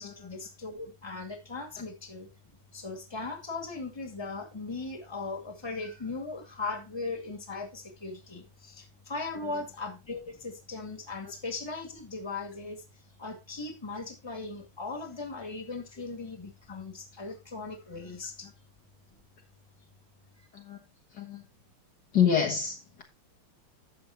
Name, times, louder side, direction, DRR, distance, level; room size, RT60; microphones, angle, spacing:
voice 1, 0.0-2.3 2.7-12.8 13.2-18.5 20.4-20.5, left 3 dB, 15° left, 2.0 m, -38 dB
voice 2, 22.1-23.0, left 7 dB, 55° left, 1.9 m, -27 dB
12.0 x 7.5 x 2.9 m
omnidirectional pair, 2.3 m